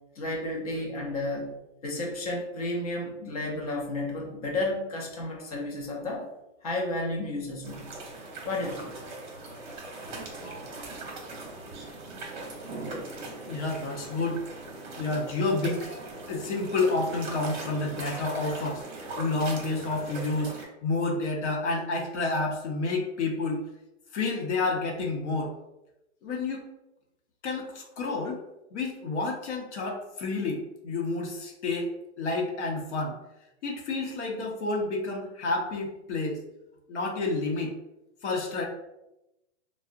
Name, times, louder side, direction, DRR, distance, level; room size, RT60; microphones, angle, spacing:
voice 1, 0.2-1.5 1.8-6.3 6.6-7.9 8.4-9.0, left 2 dB, 30° left, 0 dB, 0.4 m, -32 dB
sound 1, 7.6-20.7, right 2 dB, 40° right, 0.7 m, -40 dB
voice 2, 13.5-14.4 15.0-15.9 16.3-18.8 19.2-23.6 24.1-25.5 26.2-26.7 27.4-28.4 28.7-31.9 32.2-33.2 33.6-36.4 36.9-37.7 38.2-38.6, left 3 dB, 65° left, 0 dB, 0.7 m, -29 dB
3.5 x 2.0 x 2.4 m, 0.91 s
hypercardioid pair, 175°, 37 cm